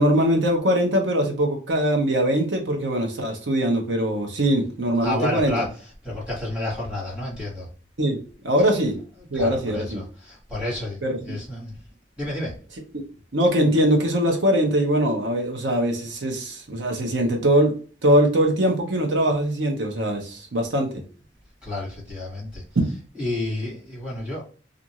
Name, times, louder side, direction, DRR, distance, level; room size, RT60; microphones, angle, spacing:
voice 1, 0.0-5.6 8.0-8.2 8.4-9.0 9.3-10.0 11.0-11.4 13.3-17.7 18.0-21.0 22.8-22.9, equal, 80° right, 2 dB, 0.8 m, -22 dB
voice 2, 5.0-5.7 6.0-7.7 9.3-11.8 12.2-12.6 21.6-22.6 23.1-24.4, left 1 dB, 5° right, -5 dB, 1.4 m, -30 dB
2.5 x 2.5 x 2.8 m, 0.38 s
head